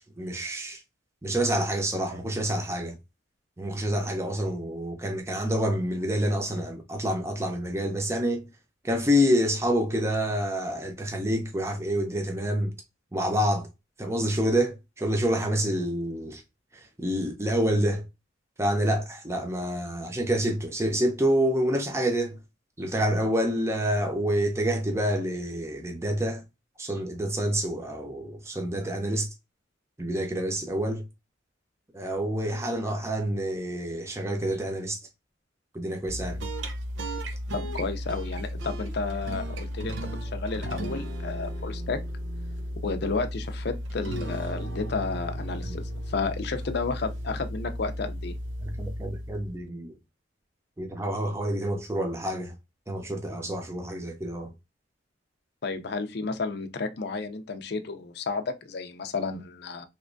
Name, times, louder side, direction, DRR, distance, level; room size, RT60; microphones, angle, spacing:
voice 1, 0.2-0.8 1.2-3.0 3.6-8.4 8.8-12.7 13.1-13.7 14.0-16.4 16.7-18.0 18.6-22.4 22.8-26.4 26.8-29.3 30.0-31.0 31.9-35.0 35.7-36.4 48.6-49.9 50.8-52.5 52.9-54.5, equal, 15° right, 0.5 m, -27 dB
sound 1, 36.0-49.6, equal, 75° right, 0.6 m, -34 dB
voice 2, 37.5-42.0 42.8-48.3 55.6-59.8, left 4 dB, 60° left, 0.5 m, -32 dB
3.3 x 3.0 x 2.5 m
head